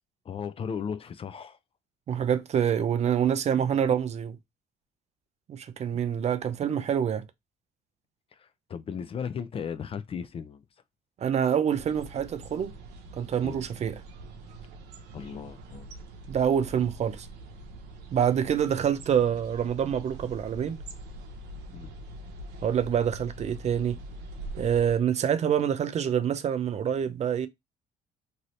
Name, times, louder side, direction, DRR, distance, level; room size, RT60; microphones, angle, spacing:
voice 1, 0.3-1.6 8.3-10.6 13.4-13.6 15.1-15.9 21.7-21.9, left 7 dB, 35° left, 0.4 m, -36 dB
voice 2, 2.1-4.4 5.5-7.2 11.2-12.7 13.1-14.0 16.3-17.3 18.1-20.8 22.6-24.0 24.6-27.5, right 8 dB, 40° right, 0.4 m, -26 dB
sound 1, 11.7-25.0, right 2 dB, 90° right, 0.7 m, -44 dB
2.7 x 2.7 x 3.0 m
cardioid pair, 110°, 17 cm